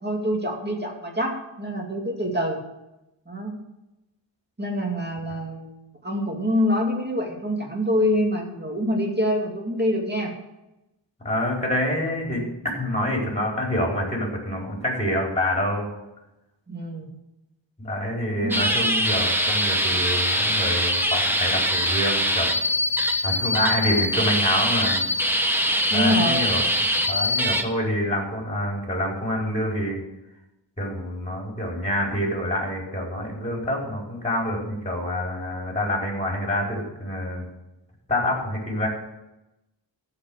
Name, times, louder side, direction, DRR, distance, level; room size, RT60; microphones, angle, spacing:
voice 1, 0.0-2.6 3.3-3.6 4.6-10.3 16.7-17.1 18.3-18.6 25.9-26.5, equal, 20° right, 0 dB, 2.4 m, -26 dB
voice 2, 11.2-12.5 12.8-16.0 17.8-22.5 23.2-25.0 25.9-26.6 27.1-30.0 30.8-37.4 38.1-38.9, left 1 dB, 15° left, -2 dB, 4.6 m, -26 dB
sound 1, 18.5-27.6, equal, 5° right, 1.2 m, -23 dB
14.5 x 5.6 x 7.7 m, 0.94 s
wide cardioid pair, 100°, 45 cm